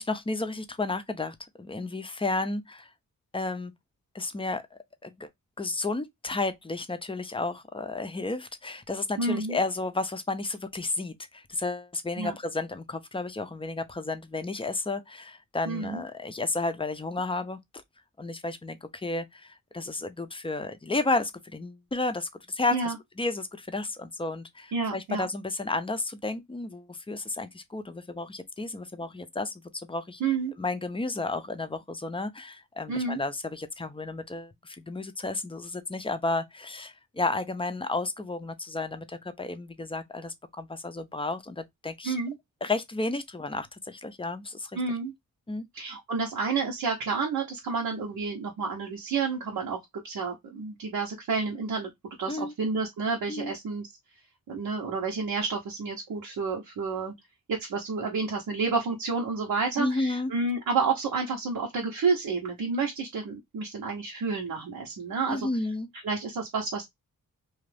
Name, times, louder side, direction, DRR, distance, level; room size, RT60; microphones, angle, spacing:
voice 1, 0.0-2.9 3.3-3.7 4.1-5.3 5.6-17.8 18.2-30.2 30.6-42.2 42.6-44.8 45.5-45.7 52.3-52.5 53.3-53.5 59.8-60.3 65.3-65.9, left 3 dB, 15° left, 0.5 m, -32 dB
voice 2, 9.2-9.6 12.2-12.4 15.7-16.0 22.7-23.0 24.7-25.3 30.2-30.5 32.9-33.2 42.0-42.3 44.7-45.1 45.7-49.8 50.0-51.9 52.2-53.9 54.5-57.1 57.5-65.5 66.0-66.9, right 4 dB, 80° right, 0.9 m, -30 dB
2.5 x 2.4 x 3.2 m
cardioid pair, 60°, 35 cm